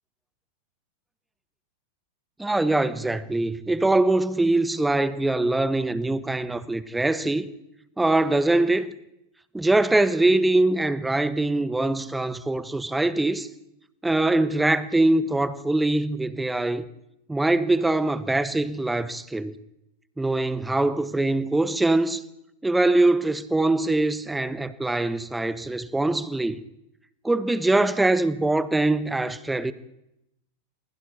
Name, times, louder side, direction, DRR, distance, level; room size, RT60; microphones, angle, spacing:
voice 1, 2.4-7.5 8.0-8.9 9.5-13.5 14.0-16.8 17.3-19.6 20.2-22.2 22.6-26.6 27.2-29.7, right 2 dB, 5° right, 1.2 m, -23 dB
29.0 x 21.5 x 4.3 m
figure-of-eight pair, 90°, 0 cm